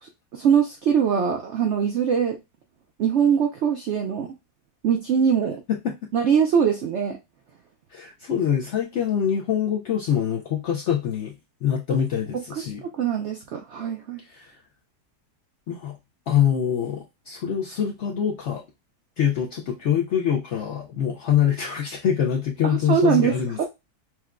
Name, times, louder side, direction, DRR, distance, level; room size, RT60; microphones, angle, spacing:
voice 1, 0.0-2.4 3.0-4.4 4.8-5.6 6.1-7.2 11.9-12.0 12.3-14.2 22.6-23.6, right 7 dB, 75° right, 4 dB, 0.6 m, -22 dB
voice 2, 7.9-11.3 11.6-12.8 14.2-14.6 15.7-16.0 16.3-18.6 19.2-23.6, left 9 dB, 75° left, 0 dB, 0.6 m, -24 dB
5.7 x 2.2 x 2.4 m, 0.23 s
omnidirectional pair, 1.7 m